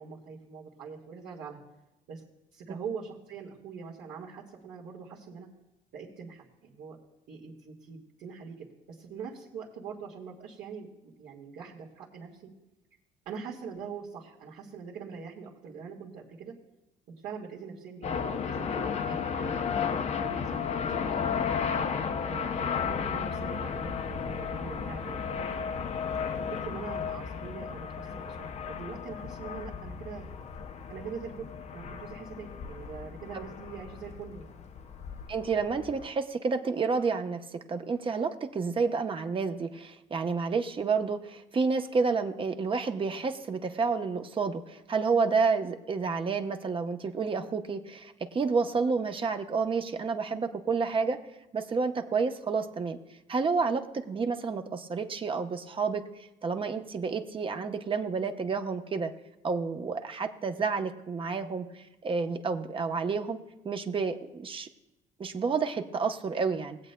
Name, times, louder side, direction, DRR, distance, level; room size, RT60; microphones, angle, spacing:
voice 1, 0.0-1.6 2.1-2.2 2.5-5.5 5.9-7.0 7.3-12.5 13.3-16.5 17.2-21.5 22.2-25.9 26.4-30.3 30.9-31.5 31.7-34.5, right 6 dB, 75° right, -9 dB, 1.8 m, -43 dB
sound 1, 18.0-36.1, left 6 dB, 40° left, 0.6 m, -34 dB
voice 2, 35.3-51.2 51.5-53.0 53.3-59.1 59.4-63.4 63.6-64.7 65.2-66.8, right 4 dB, 30° right, 6 dB, 0.8 m, -30 dB
21.0 x 8.1 x 2.2 m, 1.0 s
cardioid pair, 110°, 17 cm